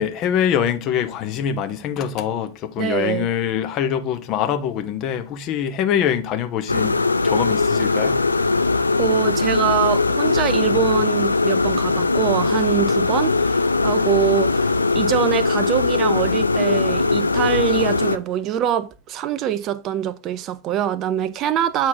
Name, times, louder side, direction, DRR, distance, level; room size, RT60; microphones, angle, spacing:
voice 1, 0.0-8.2, left 9 dB, 35° left, 0.9 m, -24 dB
voice 2, 2.8-3.3 9.0-21.9, right 10 dB, 35° right, 0.6 m, -24 dB
sound 1, 6.7-18.2, left 3 dB, 80° left, 0.4 m, -20 dB
8.4 x 4.2 x 3.9 m
figure-of-eight pair, 90°, 0 cm